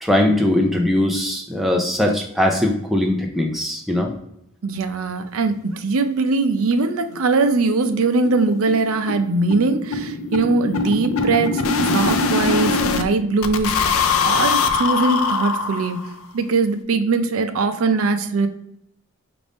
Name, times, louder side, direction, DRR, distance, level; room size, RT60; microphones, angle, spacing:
voice 1, 0.0-4.1, left 1 dB, ahead, 1 dB, 0.3 m, -20 dB
voice 2, 4.6-16.0 16.3-18.5, right 3 dB, 80° right, 8 dB, 0.5 m, -21 dB
sound 1, 6.2-6.3 6.6-6.7 7.0-7.1 7.4-7.6 7.8-13.0 13.4-16.2, left 4 dB, 80° left, 0.4 m, -22 dB
5.0 x 2.5 x 3.4 m, 0.77 s
head